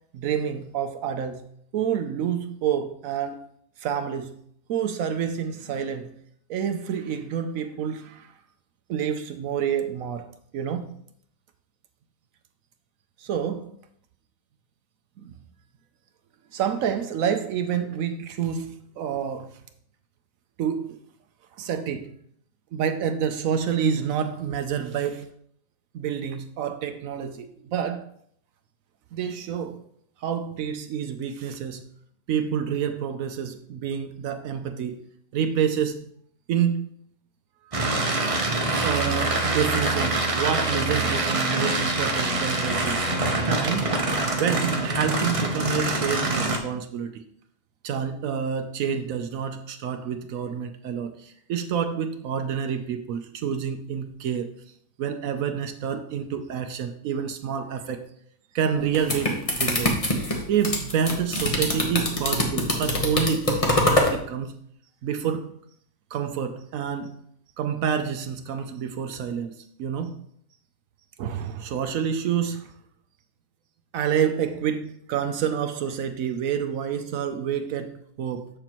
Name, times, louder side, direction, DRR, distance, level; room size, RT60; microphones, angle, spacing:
voice 1, 0.1-1.5 1.7-3.4 3.8-4.4 4.7-6.2 6.5-8.3 8.9-10.3 10.5-10.9 13.2-13.7 15.2-15.3 16.5-19.5 20.6-21.0 21.6-22.1 22.7-25.3 25.9-28.0 29.1-29.8 30.2-31.8 32.3-35.0 35.3-36.1 36.5-36.8 38.8-43.1 43.5-43.9 44.3-47.2 47.8-54.5 55.0-58.0 58.5-60.0 60.5-64.6 65.0-65.6 66.1-67.2 67.6-70.2 71.2-72.7 73.9-78.5, right 8 dB, 70° right, 0.8 m, -28 dB
sound 1, 37.7-46.6, right 2 dB, 50° right, 0.4 m, -25 dB
sound 2, 58.7-64.1, left 1 dB, 25° left, 0.8 m, -24 dB
7.1 x 6.7 x 3.0 m
omnidirectional pair, 1.9 m